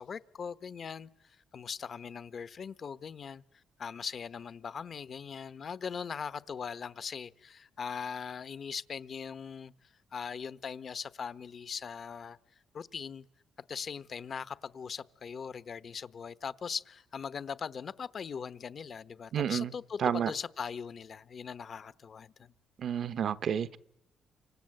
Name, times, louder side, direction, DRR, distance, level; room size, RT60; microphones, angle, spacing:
voice 1, 0.0-3.4 3.8-9.7 10.1-12.4 12.7-13.3 13.7-22.5, left 6 dB, 50° left, 1.0 m, -40 dB
voice 2, 19.3-19.7 20.0-20.3 22.8-23.8, right 8 dB, 60° right, 0.9 m, -30 dB
29.0 x 25.5 x 7.8 m
cardioid pair, 90°, 0 cm